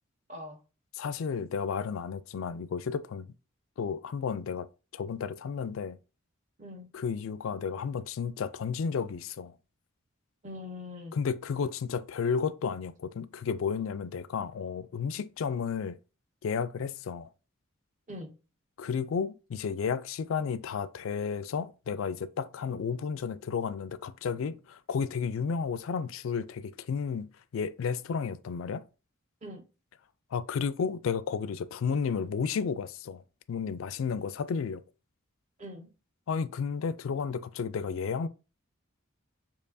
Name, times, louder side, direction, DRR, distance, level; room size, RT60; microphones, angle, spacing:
voice 1, 0.3-0.6 6.6-6.9 10.4-11.1 18.1-18.3 29.4-29.6 35.6-35.9, left 1 dB, 35° right, 1.0 m, -42 dB
voice 2, 1.0-3.3 3.8-4.7 4.9-6.0 6.9-9.5 11.1-16.0 16.4-17.3 18.8-28.8 30.3-33.2 33.5-34.8 36.3-38.3, left 6 dB, 70° left, 0.3 m, -32 dB
6.6 x 2.9 x 2.6 m
head